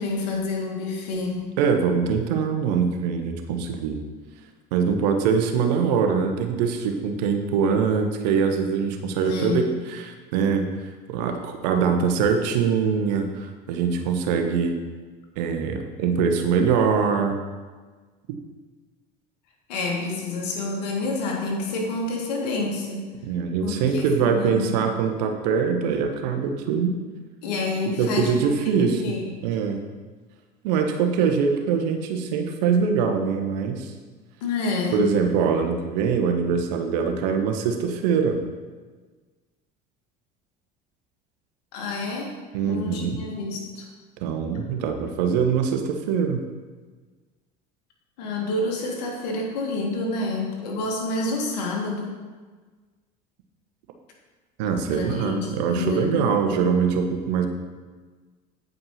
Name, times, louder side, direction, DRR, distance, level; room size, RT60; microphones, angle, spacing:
voice 1, 0.0-1.4 9.2-9.6 19.7-23.1 23.6-24.7 27.4-28.4 28.8-29.3 34.4-35.1 41.7-42.3 42.6-43.9 48.2-52.1 54.9-56.7, left 3 dB, 90° left, 0 dB, 2.0 m, -28 dB
voice 2, 1.6-4.0 4.7-10.7 11.1-14.8 15.4-17.4 23.2-27.0 28.0-29.8 30.6-33.9 34.9-38.4 42.5-43.2 44.2-46.4 54.6-57.5, right 6 dB, 85° right, 5 dB, 1.1 m, -23 dB
9.3 x 5.3 x 5.7 m, 1.4 s
supercardioid pair, 90°, 21 cm